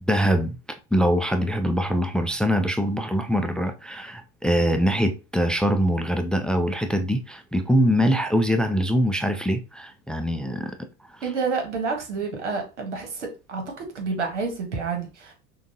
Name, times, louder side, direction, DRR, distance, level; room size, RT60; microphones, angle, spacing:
voice 1, 0.1-10.8, equal, ahead, 0.4 m, -23 dB
voice 2, 11.2-13.6 13.9-15.3, right 4 dB, 90° right, 1.3 m, -29 dB
5.8 x 2.4 x 2.7 m
hypercardioid pair, 75°, 34 cm